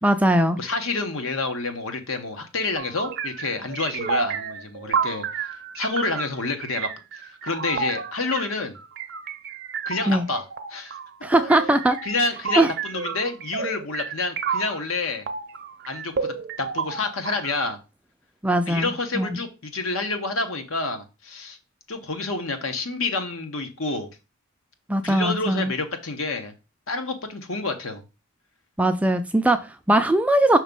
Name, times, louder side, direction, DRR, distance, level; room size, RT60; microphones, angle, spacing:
voice 1, 0.0-0.6 10.1-10.2 11.2-12.0 12.6-12.7 18.4-19.4 24.9-25.7 28.8-30.6, right 1 dB, 5° right, 0.3 m, -20 dB
voice 2, 0.6-6.9 7.1-8.8 9.9-11.0 12.0-15.3 15.9-17.8 18.7-21.6 21.9-24.1 25.0-26.5 26.9-28.0, left 3 dB, 70° left, 1.1 m, -28 dB
sound 1, 2.8-14.8 15.3-17.6, right 6 dB, 50° right, 0.6 m, -31 dB
6.0 x 3.1 x 5.2 m
head